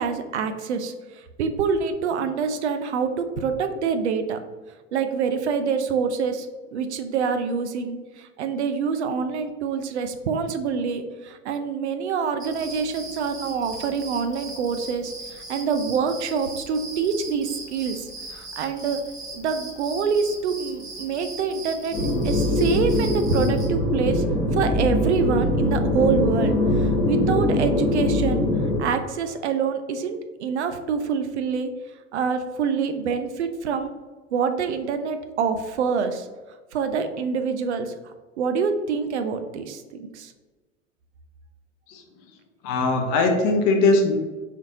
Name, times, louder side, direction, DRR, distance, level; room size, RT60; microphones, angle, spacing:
voice 1, 0.0-4.4 4.9-6.5 6.7-19.0 19.3-22.0 22.2-24.2 24.5-28.5 28.8-31.7 32.1-33.9 34.3-36.3 36.7-40.3, right 6 dB, 65° right, 8 dB, 0.5 m, -26 dB
sound 1, 12.4-23.7, right 2 dB, 10° right, 0.8 m, -39 dB
sound 2, 21.9-28.8, left 1 dB, 15° left, 1.0 m, -22 dB
voice 2, 42.6-44.1, left 3 dB, 40° left, 4 dB, 0.7 m, -20 dB
4.1 x 3.1 x 2.6 m, 1.3 s
figure-of-eight pair, 90°, 37 cm